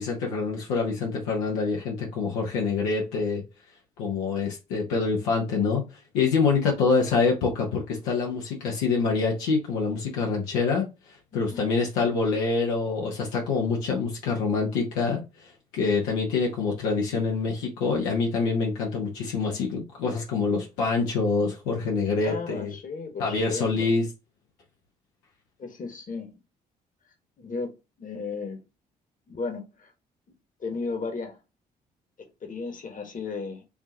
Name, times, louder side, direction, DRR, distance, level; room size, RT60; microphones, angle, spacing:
voice 1, 0.0-3.4 4.0-5.8 6.1-10.9 11.3-22.7 23.2-24.0, left 4 dB, 75° left, 1.1 m, -26 dB
voice 2, 11.3-11.6 22.2-23.9 25.6-26.4 27.4-28.6 29.3-29.9 30.6-31.4 32.2-33.6, left 4 dB, 40° left, 1.4 m, -35 dB
4.5 x 2.8 x 2.8 m
hypercardioid pair, 45°, 20 cm